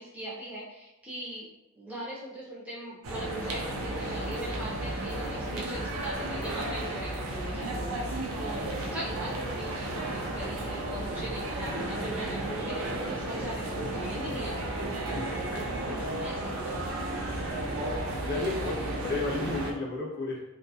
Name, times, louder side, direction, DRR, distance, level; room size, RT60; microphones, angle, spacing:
voice 1, 0.0-1.5 1.7-14.6 16.2-17.0, right 1 dB, 5° right, -7 dB, 0.4 m, -40 dB
sound 1, 3.0-19.7, right 1 dB, 80° right, 0.5 m, -33 dB
voice 2, 15.1-16.1 18.0-20.4, left 3 dB, 45° left, -4 dB, 0.6 m, -34 dB
2.5 x 2.1 x 2.7 m, 0.94 s
head